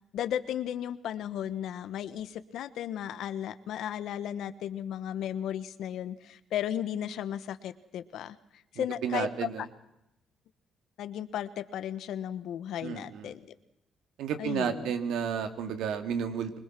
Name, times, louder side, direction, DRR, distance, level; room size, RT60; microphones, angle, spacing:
voice 1, 0.1-8.4 8.7-9.5 11.0-13.5 14.4-14.9, left 10 dB, 80° left, 13 dB, 1.3 m, -35 dB
voice 2, 8.8-9.7 12.8-13.3 14.2-16.6, right 7 dB, 85° right, 8 dB, 2.4 m, -32 dB
24.5 x 21.5 x 6.1 m, 0.81 s
cardioid pair, 90°, 0 cm